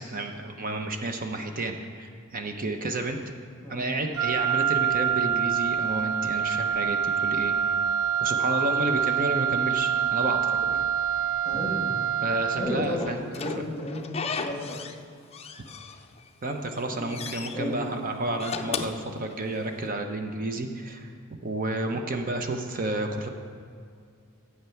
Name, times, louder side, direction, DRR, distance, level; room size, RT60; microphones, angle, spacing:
voice 1, 0.0-3.2 3.7-7.5 8.2-10.9 11.5-11.7 12.2-13.2 16.4-21.1 21.4-23.3, right 2 dB, 40° right, 5 dB, 0.8 m, -31 dB
voice 2, 3.6-3.9 11.4-11.9 12.5-14.1 14.4-14.8 16.9-17.2 17.5-17.8, left 1 dB, 10° left, -4 dB, 1.8 m, -33 dB
Wind instrument woodwind instrument, 4.1-12.9, right 8 dB, 70° right, 0.3 m, -26 dB
Slam / Squeak, 13.0-15.0 15.3-16.3 16.7-17.6 18.2-19.8, left 5 dB, 30° left, 0.5 m, -35 dB
11.0 x 8.1 x 5.8 m, 2.3 s
head